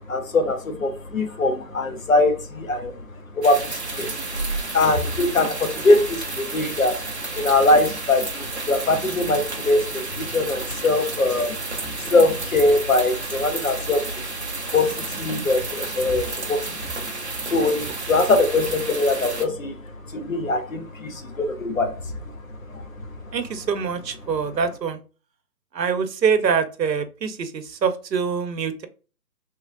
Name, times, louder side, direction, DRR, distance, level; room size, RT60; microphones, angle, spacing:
voice 1, 0.1-2.9 3.4-4.1 4.7-7.0 7.3-11.6 11.8-14.1 14.7-17.1 17.4-19.7 20.1-21.9 22.7-22.8, left 2 dB, 55° left, 0.7 m, -22 dB
sound 1, 3.4-19.4, right 3 dB, 45° right, 0.5 m, -32 dB
voice 2, 23.3-25.0 25.7-28.9, right 6 dB, 80° right, 0.7 m, -24 dB
3.6 x 3.0 x 2.4 m
hypercardioid pair, 170°, 49 cm